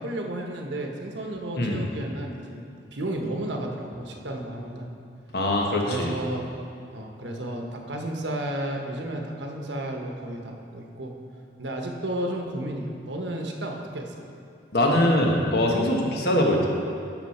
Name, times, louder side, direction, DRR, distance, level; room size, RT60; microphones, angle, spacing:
voice 1, 0.0-2.6 2.9-4.9 5.9-6.5 6.9-11.1 11.6-14.1, right 1 dB, 85° right, 2 dB, 1.1 m, -32 dB
voice 2, 5.3-6.1 14.7-16.7, left 1 dB, 60° left, 0 dB, 1.3 m, -22 dB
12.0 x 6.2 x 4.3 m, 2.5 s
head